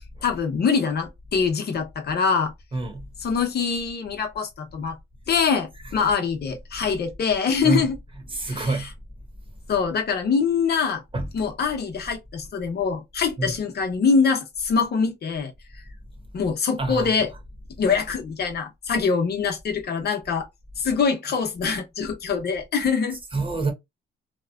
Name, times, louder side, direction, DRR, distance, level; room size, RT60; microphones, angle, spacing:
voice 1, 0.2-2.5 3.2-5.0 5.3-8.0 8.5-8.7 9.7-11.0 11.3-15.5 16.3-17.3 17.8-20.5 20.8-23.2, left 5 dB, 55° left, 0.8 m, -24 dB
voice 2, 2.7-3.1 6.8-6.9 7.6-7.9 8.3-8.9 11.1-11.3 13.4-13.5 16.8-17.1 23.3-23.7, right 3 dB, 25° right, 1.0 m, -26 dB
3.0 x 2.1 x 2.3 m
cardioid pair, 90°, 20 cm